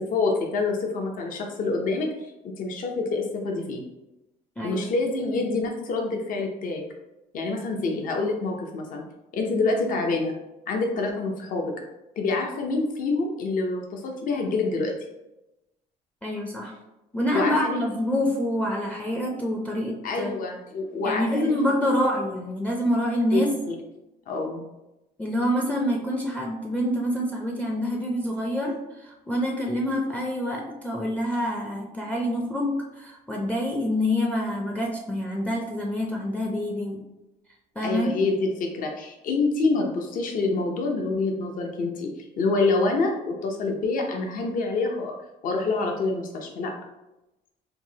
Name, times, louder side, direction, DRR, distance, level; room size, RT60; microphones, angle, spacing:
voice 1, 0.0-2.1 2.6-3.8 4.6-6.8 7.3-9.0 9.3-10.3 10.7-11.7 12.2-14.9 17.3-17.9 20.0-22.0 23.3-23.4 23.7-23.8 24.3-24.6 37.8-45.1 45.4-46.7, left 3 dB, 55° left, 2 dB, 0.6 m, -26 dB
voice 2, 4.6-4.9 16.2-16.7 17.1-20.3 21.0-23.5 25.2-37.0 37.8-38.1, left 1 dB, 10° left, -1 dB, 0.4 m, -26 dB
4.6 x 2.0 x 2.7 m, 0.95 s
cardioid pair, 110°, 17 cm